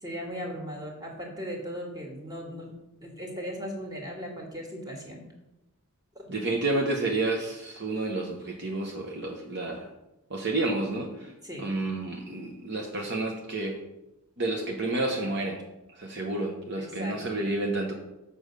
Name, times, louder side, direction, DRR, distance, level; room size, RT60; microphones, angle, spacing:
voice 1, 0.0-2.7 3.0-5.2 6.2-6.3 11.4-11.7 16.8-17.2, equal, 20° right, 0 dB, 2.0 m, -37 dB
voice 2, 6.3-9.9 10.3-11.3 11.6-13.8 14.4-15.6 15.9-17.9, right 2 dB, 50° right, 1 dB, 1.0 m, -30 dB
7.1 x 5.2 x 6.6 m, 0.94 s
head